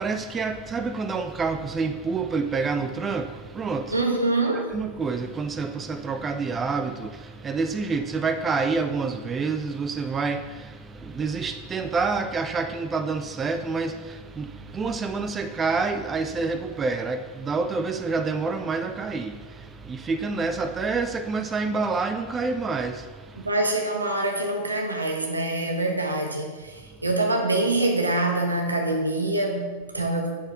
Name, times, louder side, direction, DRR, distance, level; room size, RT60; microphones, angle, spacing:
voice 1, 0.0-4.0 4.5-23.5 26.9-27.0, right 4 dB, 20° right, 0.4 m, -28 dB
voice 2, 3.9-4.8 23.4-30.4, right 2 dB, 80° right, 1.1 m, -25 dB
8.5 x 6.4 x 3.5 m
figure-of-eight pair, 90°, 0 cm